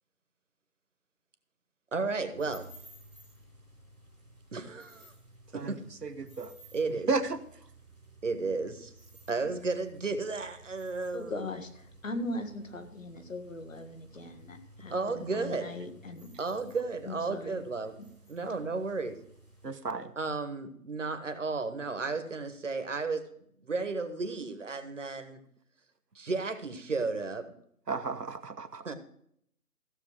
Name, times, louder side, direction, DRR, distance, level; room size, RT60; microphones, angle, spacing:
voice 1, 1.9-2.6 4.5-5.1 5.5-5.8 6.7-7.1 8.2-8.9 9.3-11.5 14.9-15.7 16.4-17.9 18.3-19.2 20.2-23.2 23.6-25.4 26.1-27.5 28.8-28.9, right 3 dB, 50° right, 9 dB, 1.3 m, -33 dB
sound 1, 2.3-19.7, right 1 dB, 5° left, 1.5 m, -55 dB
voice 2, 5.5-6.5 7.1-7.4 19.6-20.1 27.9-28.8, right 3 dB, 85° right, 9 dB, 1.1 m, -33 dB
voice 3, 11.1-16.3 17.0-17.6, left 1 dB, 55° left, 6 dB, 1.7 m, -39 dB
15.0 x 6.7 x 4.8 m, 0.69 s
figure-of-eight pair, 160°, 47 cm